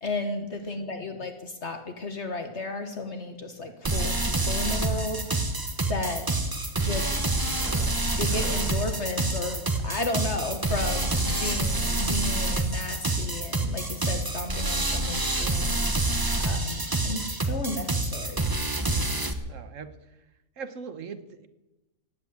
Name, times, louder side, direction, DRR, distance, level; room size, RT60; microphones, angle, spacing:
voice 1, 0.0-5.2 5.9-6.3 6.8-7.1 8.1-15.8 16.4-18.5, left 2 dB, 50° left, 6 dB, 1.5 m, -33 dB
sound 1, 3.8-19.3, right 2 dB, 15° right, 1.0 m, -27 dB
sound 2, 5.2-5.3 5.7-5.8 6.5-10.0 10.3-12.4 12.7-12.9, left 1 dB, 25° left, 4.8 m, -43 dB
voice 2, 19.5-19.9 20.6-21.5, right 5 dB, 60° right, 10 dB, 1.4 m, -40 dB
18.0 x 8.3 x 8.6 m, 1.0 s
omnidirectional pair, 1.5 m